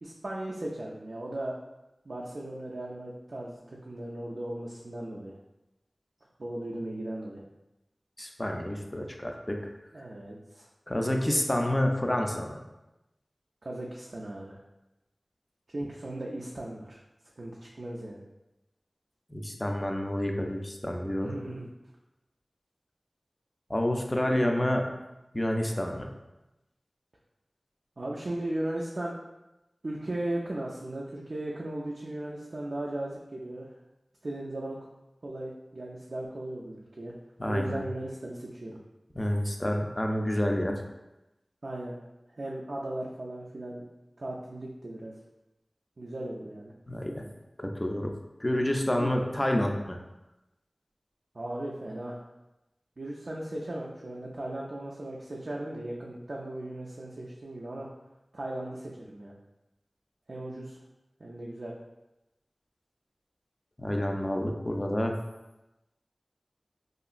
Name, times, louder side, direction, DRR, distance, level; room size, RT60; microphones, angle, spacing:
voice 1, 0.0-1.5 2.1-5.4 6.4-7.4 9.9-10.7 13.6-14.6 15.7-17.0 17.4-18.2 21.2-21.7 28.0-29.2 29.8-33.7 34.2-34.8 35.2-37.1 37.5-38.8 41.6-42.0 42.4-43.9 44.2-45.1 46.0-46.7 49.0-49.1 51.3-52.2 53.0-57.9 58.3-59.3 60.3-60.8 61.2-61.7, right 1 dB, 70° right, -4 dB, 0.3 m, -37 dB
voice 2, 8.2-9.6 10.9-12.6 19.3-21.3 23.7-24.9 25.3-26.1 37.4-37.8 39.2-40.8 46.9-47.2 47.6-48.1 48.4-50.0 63.8-65.2, left 1 dB, 25° left, 2 dB, 0.3 m, -28 dB
2.8 x 2.4 x 2.4 m, 0.97 s
wide cardioid pair, 45°, 0 cm